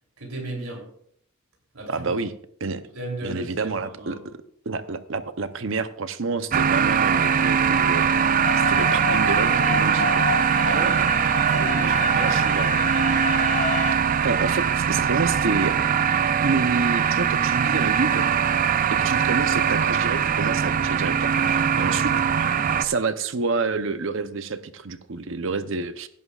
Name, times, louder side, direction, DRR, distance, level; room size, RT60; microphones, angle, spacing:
voice 1, 0.2-0.8 1.7-2.1 2.9-4.2 10.6-11.0 11.5-13.2 21.5-22.8, right 1 dB, 85° right, -1 dB, 3.3 m, -35 dB
voice 2, 1.9-2.3 2.6-2.8 3.2-4.2 4.7-8.3 8.7-10.3 12.2-12.8 14.2-15.7 16.4-18.3 19.0-22.1 22.8-26.1, right 4 dB, 60° right, 11 dB, 0.7 m, -28 dB
sound 1, 6.5-22.9, right 7 dB, 40° right, 0.4 m, -21 dB
sound 2, 8.4-13.9, left 3 dB, 35° left, 0.6 m, -29 dB
16.0 x 11.0 x 2.4 m, 0.65 s
head